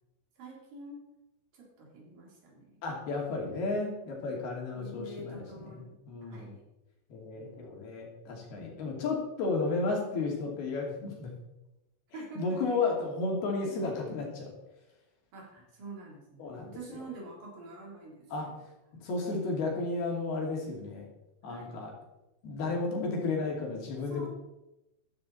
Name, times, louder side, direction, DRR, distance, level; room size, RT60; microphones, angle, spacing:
voice 1, 0.4-1.0 1.5-2.8 4.7-6.6 7.3-7.7 12.1-12.6 13.6-13.9 15.3-18.6 19.3-19.7 21.4-21.7 24.1-24.3, right 2 dB, 50° right, -2 dB, 4.9 m, -47 dB
voice 2, 2.8-6.5 7.1-11.3 12.4-14.5 16.4-16.8 18.3-18.5 19.0-21.1 21.4-21.9 22.4-24.3, left 3 dB, 55° left, -1 dB, 4.1 m, -33 dB
14.0 x 12.0 x 4.2 m, 0.93 s
omnidirectional pair, 5.6 m